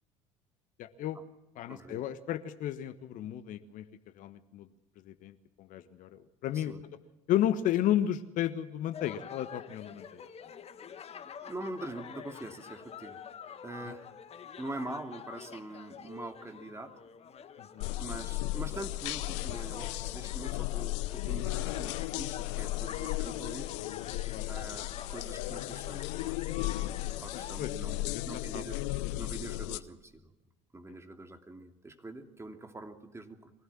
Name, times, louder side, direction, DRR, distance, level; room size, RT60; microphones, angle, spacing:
voice 1, 0.8-1.2 1.6-3.9 4.1-4.7 5.0-6.7 7.3-10.2 13.8-13.9 17.6-17.9 24.3-24.5 27.3-27.7 28.1-28.3 28.5-28.6, left 11 dB, 60° left, 11 dB, 1.3 m, -33 dB
voice 2, 1.7-2.0 6.5-6.8 11.4-13.2 13.6-14.0 14.6-16.9 18.0-23.7 24.5-26.4 27.2-28.8 29.2-30.2 30.7-33.5, right 2 dB, 15° right, 5 dB, 2.9 m, -44 dB
sound 1, 8.9-27.6, left 7 dB, 40° left, 1.8 m, -47 dB
sound 2, 17.8-29.8, left 18 dB, 75° left, 0.7 m, -35 dB
24.0 x 16.0 x 7.5 m, 0.98 s
hypercardioid pair, 65°, 16 cm